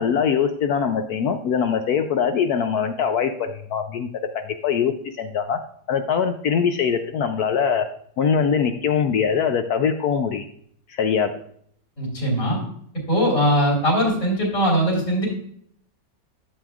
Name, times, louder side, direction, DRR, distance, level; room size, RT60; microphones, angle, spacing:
voice 1, 0.0-4.1 4.3-5.6 5.9-7.9 8.2-10.4 10.9-11.3, left 7 dB, 70° left, 7 dB, 1.0 m, -22 dB
voice 2, 12.0-12.6 13.1-15.3, equal, 50° left, -5 dB, 3.4 m, -20 dB
11.5 x 7.3 x 2.4 m, 0.64 s
omnidirectional pair, 1.9 m